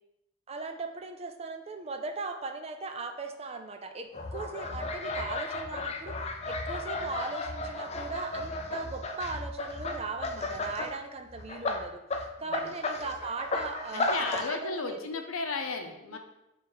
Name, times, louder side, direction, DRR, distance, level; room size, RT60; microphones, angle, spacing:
voice 1, 0.5-6.2 6.5-12.0 12.4-15.0 16.1-16.2, right 3 dB, 30° right, 6 dB, 0.5 m, -38 dB
sound 1, 4.1-10.9 11.3-14.5, left 2 dB, 30° left, 0.4 m, -34 dB
voice 2, 12.4-12.7 13.9-16.2, left 4 dB, 85° left, 5 dB, 0.8 m, -34 dB
6.0 x 3.3 x 4.8 m, 0.92 s
head